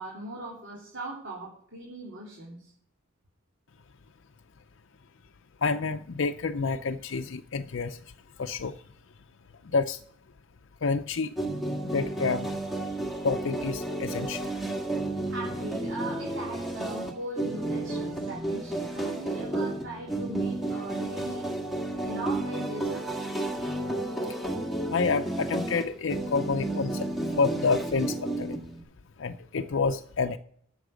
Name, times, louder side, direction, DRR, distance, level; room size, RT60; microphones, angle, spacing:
voice 1, 0.0-2.7 15.3-21.4 22.0-23.1, right 1 dB, 65° right, -4 dB, 3.2 m, -39 dB
voice 2, 5.6-8.0 8.4-8.8 9.7-10.0 10.8-11.3 11.8-12.5 13.2-14.5 24.9-27.1 27.4-28.6 29.2-30.4, left 4 dB, 65° left, 6 dB, 0.5 m, -28 dB
sound 1, 11.4-28.8, right 2 dB, ahead, 1.7 m, -32 dB
13.0 x 7.2 x 6.3 m, 0.66 s
head